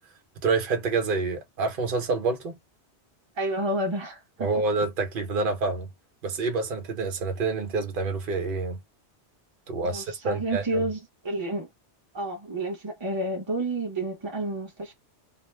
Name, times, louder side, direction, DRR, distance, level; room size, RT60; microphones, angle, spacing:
voice 1, 0.4-2.6 4.4-5.9 6.2-8.8 9.7-10.8, right 3 dB, 50° right, 1.0 m, -27 dB
voice 2, 3.4-4.5 9.8-11.7 12.1-14.9, right 1 dB, 25° right, 0.9 m, -30 dB
2.5 x 2.1 x 3.2 m
omnidirectional pair, 1.2 m